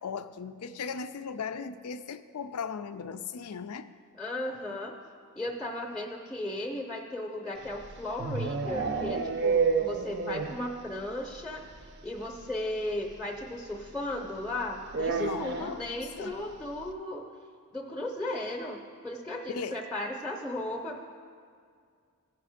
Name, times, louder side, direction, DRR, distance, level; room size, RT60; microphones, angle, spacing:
voice 1, 0.0-3.9 15.2-15.8 16.2-16.4 19.5-19.8, left 6 dB, 85° left, 12 dB, 0.5 m, -37 dB
voice 2, 4.2-4.9 5.4-11.7 12.0-17.3 17.7-21.0, left 1 dB, 5° left, 2 dB, 0.7 m, -35 dB
sound 1, 7.6-10.7 11.0-11.1 11.4-11.5 11.7-11.8 13.1-13.2 14.9-15.7, right 5 dB, 50° right, 0.5 m, -29 dB
15.5 x 5.9 x 5.0 m, 2.2 s
head